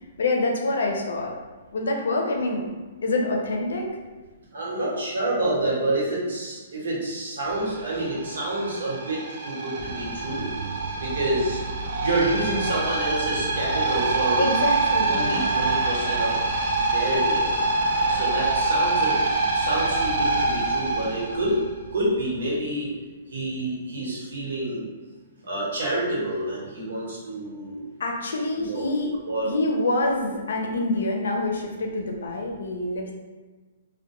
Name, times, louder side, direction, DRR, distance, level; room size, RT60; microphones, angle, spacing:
voice 1, 0.2-1.3 1.7-2.7 3.0-3.9 14.4-15.5 28.0-29.1 29.4-33.1, left 2 dB, 85° left, 2 dB, 0.5 m, -26 dB
voice 2, 4.5-10.5 11.0-11.6 12.0-14.5 15.1-16.3 16.9-17.5 18.1-19.1 19.5-21.6 21.9-22.9 23.3-24.8 25.4-27.8 28.5-28.9 29.3-29.5, right 1 dB, 90° right, -5 dB, 1.0 m, -28 dB
sound 1, 7.5-22.0, right 3 dB, 50° right, 0.3 m, -25 dB
2.2 x 2.1 x 2.9 m, 1.3 s
hypercardioid pair, 175°, 0 cm